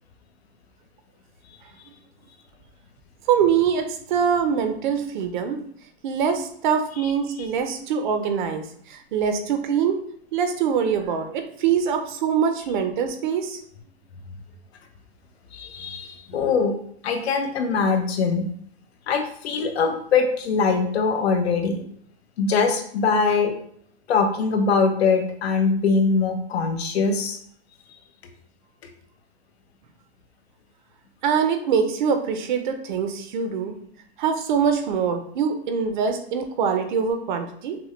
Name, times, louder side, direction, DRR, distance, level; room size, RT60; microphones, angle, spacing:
voice 1, 3.3-5.6 6.0-10.0 10.3-13.6 16.3-16.4 31.2-33.8 34.2-37.8, right 7 dB, 50° right, 6 dB, 0.6 m, -24 dB
voice 2, 15.5-16.8 17.0-18.5 19.1-21.8 22.4-23.5 24.1-27.4, left 4 dB, 85° left, 5 dB, 0.9 m, -22 dB
6.0 x 2.2 x 3.1 m, 0.63 s
supercardioid pair, 165°, 31 cm